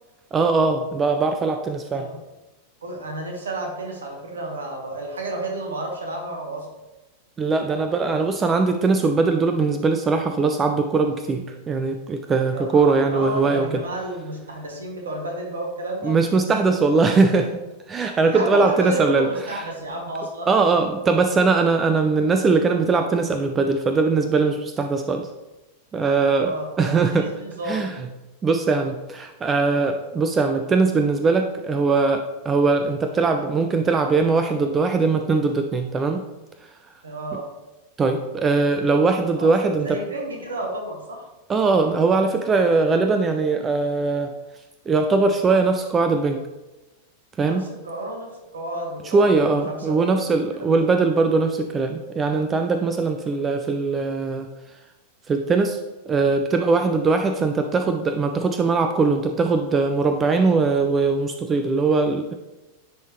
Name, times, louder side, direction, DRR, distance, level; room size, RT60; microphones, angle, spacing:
voice 1, 0.3-2.1 7.4-13.8 16.0-17.6 17.9-19.3 19.5-19.6 20.5-25.3 25.9-27.3 27.7-27.9 28.4-36.2 38.0-40.0 41.5-44.3 44.9-46.4 47.4-47.7 49.0-54.5 55.3-55.8 56.1-62.3, right 4 dB, 20° right, 6 dB, 0.4 m, -21 dB
voice 2, 2.8-6.7 12.5-16.1 18.3-20.5 26.3-27.9 37.0-37.5 39.4-39.5 39.8-41.3 47.4-50.8, right 1 dB, 70° right, 1 dB, 1.4 m, -31 dB
10.0 x 3.6 x 3.1 m, 1.0 s
figure-of-eight pair, 90°, 0 cm